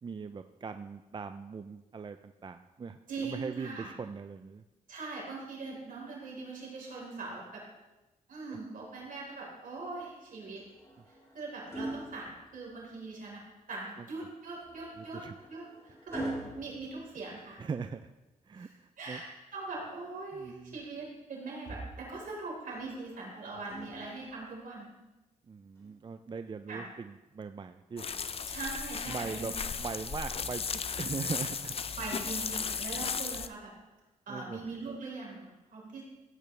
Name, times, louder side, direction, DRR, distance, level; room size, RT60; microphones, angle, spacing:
voice 1, 0.0-4.6 8.5-8.6 14.0-14.1 15.0-15.3 17.6-18.1 18.5-19.2 20.3-20.8 25.5-28.1 29.1-30.6 31.0-31.7 34.3-34.6, right 5 dB, 35° right, 9 dB, 0.4 m, -40 dB
voice 2, 3.1-3.9 4.9-7.6 8.3-10.6 11.3-13.4 13.7-15.2 15.5-16.3 16.5-17.6 18.6-19.2 19.5-24.9 26.7-26.8 28.5-29.5 31.9-33.7 34.3-36.0, right 3 dB, 70° right, -3 dB, 4.2 m, -41 dB
sound 1, 10.6-13.0 14.6-17.8 19.6-20.7 22.7-24.5 25.8-26.0, right 1 dB, 20° left, 3.2 m, -44 dB
sound 2, 28.0-33.5, left 6 dB, 45° left, 0.6 m, -35 dB
15.5 x 9.0 x 3.3 m, 1.1 s
cardioid pair, 70°, 14 cm